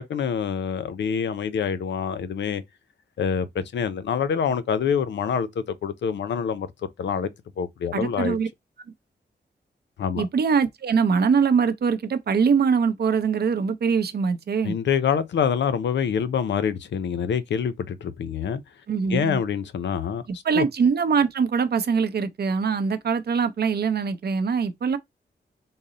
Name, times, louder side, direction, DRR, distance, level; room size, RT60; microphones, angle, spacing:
voice 1, 0.1-2.6 3.2-6.7 7.0-7.3 7.6-8.4 10.0-10.3 14.6-18.6 19.1-20.2 20.5-20.7, left 7 dB, 85° left, 0.5 m, -26 dB
voice 2, 7.9-8.5 10.2-14.8 18.9-19.4 20.3-25.0, right 6 dB, 65° right, 0.6 m, -23 dB
3.9 x 2.0 x 3.8 m
cardioid pair, 75°, 18 cm